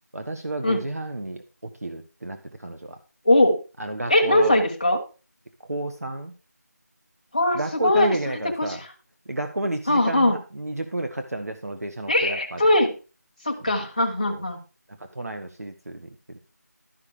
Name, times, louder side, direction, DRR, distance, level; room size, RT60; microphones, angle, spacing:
voice 1, 0.1-3.0 3.8-4.6 5.6-6.3 7.5-8.8 9.3-12.7 13.6-13.9 14.2-14.4 15.1-16.4, right 2 dB, 60° right, 6 dB, 1.4 m, -31 dB
voice 2, 3.2-3.6 4.1-5.0 7.3-8.1 8.4-8.8 9.9-10.4 12.1-12.9 13.4-14.6, left 1 dB, 25° left, 1 dB, 1.4 m, -20 dB
12.0 x 5.8 x 4.9 m, 0.33 s
figure-of-eight pair, 180°, 9 cm